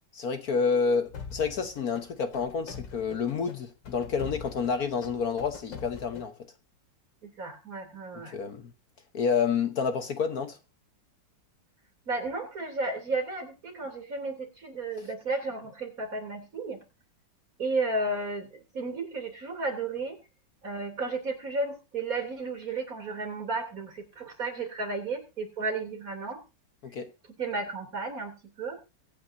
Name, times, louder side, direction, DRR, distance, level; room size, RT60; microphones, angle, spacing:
voice 1, 0.1-6.3 8.3-8.7 9.1-10.6 26.8-27.1, left 5 dB, 55° left, 1.5 m, -29 dB
sound 1, 1.0-6.2, left 5 dB, 85° left, 2.7 m, -43 dB
voice 2, 7.2-8.3 12.1-16.8 17.6-18.5 18.7-20.2 20.6-26.4 27.4-28.8, right 3 dB, 50° right, 3.6 m, -33 dB
23.5 x 9.0 x 2.7 m
omnidirectional pair, 2.0 m